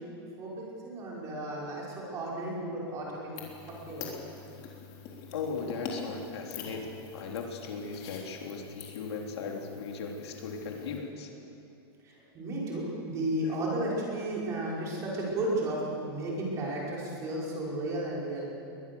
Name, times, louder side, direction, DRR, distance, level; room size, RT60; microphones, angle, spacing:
voice 1, 0.4-3.4 3.9-4.2 12.0-18.4, right 1 dB, 20° right, -4 dB, 5.5 m, -33 dB
sound 1, 3.3-11.0, left 5 dB, 35° left, 3.8 m, -45 dB
voice 2, 5.3-6.9 7.1-11.3 13.4-13.5, left 5 dB, 85° left, 1 dB, 3.6 m, -37 dB
22.0 x 20.0 x 7.1 m, 2.7 s
supercardioid pair, 170°, 13 cm